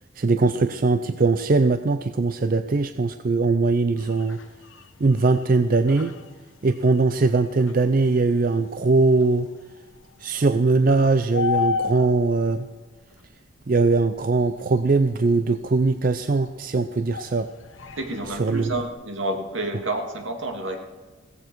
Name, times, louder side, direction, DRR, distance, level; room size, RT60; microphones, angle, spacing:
voice 1, 0.2-4.4 5.0-6.2 6.6-9.5 10.2-12.7 13.7-17.5 18.3-18.7, right 3 dB, 45° right, 10 dB, 0.5 m, -21 dB
sound 1, 4.0-13.3 13.8-16.1 16.4-18.9, left 5 dB, 80° left, 1.1 m, -35 dB
voice 2, 18.0-20.8, right 1 dB, 75° right, 3 dB, 2.2 m, -29 dB
16.5 x 14.5 x 4.6 m, 1.3 s
head